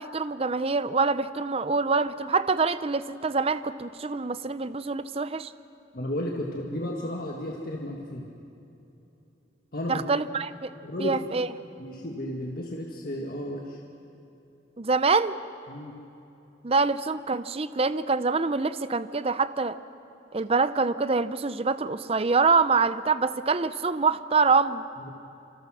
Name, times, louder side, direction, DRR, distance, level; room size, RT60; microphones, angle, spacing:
voice 1, 0.0-5.5 9.9-10.7 11.0-11.5 14.8-15.4 16.6-19.8 20.3-24.9, right 4 dB, 30° right, 14 dB, 0.6 m, -25 dB
voice 2, 5.9-8.2 9.7-10.0 10.8-11.5 11.8-13.8 15.7-16.0 25.0-25.1, left 1 dB, 50° left, 0 dB, 1.8 m, -33 dB
27.0 x 25.5 x 6.3 m, 2.9 s
head